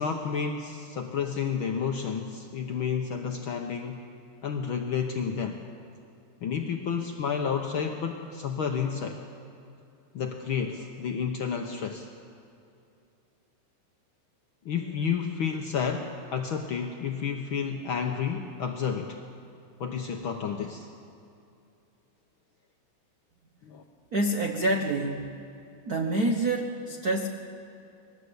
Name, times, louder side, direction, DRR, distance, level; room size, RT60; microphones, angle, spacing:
voice 1, 0.0-4.0 4.4-5.6 6.4-9.2 10.1-12.1 14.6-19.2 19.8-20.9 23.6-23.8, left 6 dB, 70° left, 3 dB, 1.2 m, -31 dB
voice 2, 24.1-25.4 25.8-27.3, right 1 dB, 80° right, 3 dB, 0.8 m, -27 dB
21.0 x 18.0 x 8.1 m, 2.6 s
omnidirectional pair, 3.5 m